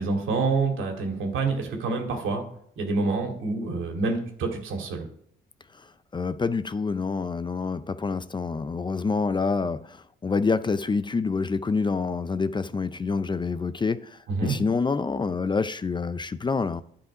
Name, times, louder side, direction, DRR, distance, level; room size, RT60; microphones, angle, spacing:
voice 1, 0.0-2.4 2.8-5.1 14.3-14.6, right 3 dB, 80° right, 2.4 m, -27 dB
voice 2, 6.1-16.8, left 4 dB, 25° left, 0.5 m, -27 dB
10.5 x 5.7 x 4.9 m
cardioid pair, 90°, 20 cm